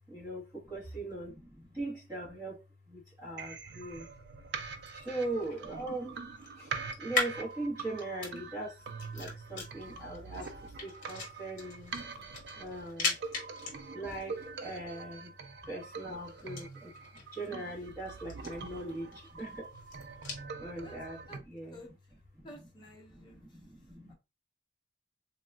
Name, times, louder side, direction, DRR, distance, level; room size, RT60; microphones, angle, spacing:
voice 1, 0.1-4.2 4.9-6.3 6.5-12.0 12.5-13.2 13.9-15.3 15.7-19.7 20.6-21.8 22.3-22.6 23.1-24.1, right 2 dB, 20° right, 1.0 m, -40 dB
sound 1, 3.4-21.4, right 4 dB, 75° right, 0.4 m, -44 dB
sound 2, 4.6-20.5, left 4 dB, 50° left, 1.1 m, -42 dB
voice 2, 18.5-19.0 20.8-20.9 21.3-21.9 22.4-23.6 24.1-24.2, equal, 25° left, 0.8 m, -53 dB
3.6 x 2.3 x 2.2 m
head